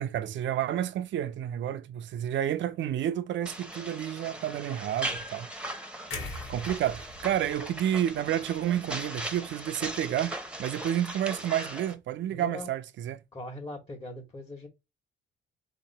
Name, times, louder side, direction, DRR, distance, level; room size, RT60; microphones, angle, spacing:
voice 1, 0.0-5.5 6.5-13.2, right 11 dB, 70° right, 0.6 m, -30 dB
sound 1, 3.5-11.9, right 1 dB, 5° right, 0.9 m, -39 dB
voice 2, 6.0-6.3 12.3-12.7 13.3-14.7, left 1 dB, 25° left, 1.4 m, -41 dB
sound 2, 6.1-10.1 10.5-10.7, left 3 dB, 75° left, 1.5 m, -44 dB
4.1 x 3.0 x 4.1 m
cardioid pair, 90°, 20 cm